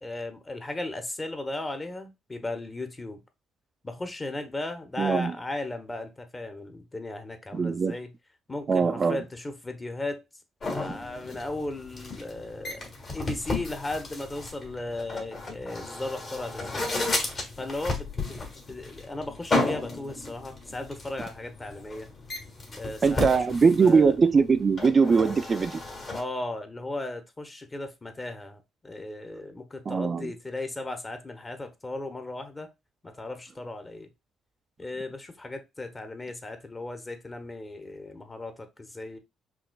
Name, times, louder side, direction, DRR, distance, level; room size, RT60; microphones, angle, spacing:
voice 1, 0.0-3.2 3.8-8.1 8.5-10.2 10.7-12.8 13.1-16.9 17.6-18.4 18.6-22.1 22.7-24.2 26.1-32.7 33.0-34.1 34.8-39.2, left 2 dB, 25° left, 1.0 m, -36 dB
voice 2, 5.0-5.3 7.5-7.9 8.7-9.2 23.0-25.8 29.9-30.3, right 5 dB, 40° right, 0.3 m, -21 dB
sound 1, 10.6-26.2, left 2 dB, 45° left, 1.7 m, -34 dB
5.9 x 2.5 x 2.2 m
hypercardioid pair, 55°, 0 cm